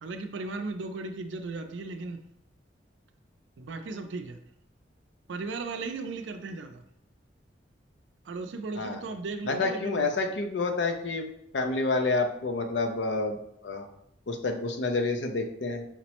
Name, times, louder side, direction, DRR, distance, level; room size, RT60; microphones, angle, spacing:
voice 1, 0.0-2.3 3.6-4.4 5.3-6.8 8.2-10.1, right 3 dB, 80° right, 7 dB, 0.4 m, -36 dB
voice 2, 9.5-11.3 11.5-13.9 14.3-15.8, left 3 dB, 70° left, 4 dB, 0.5 m, -29 dB
5.7 x 2.0 x 2.9 m, 0.74 s
head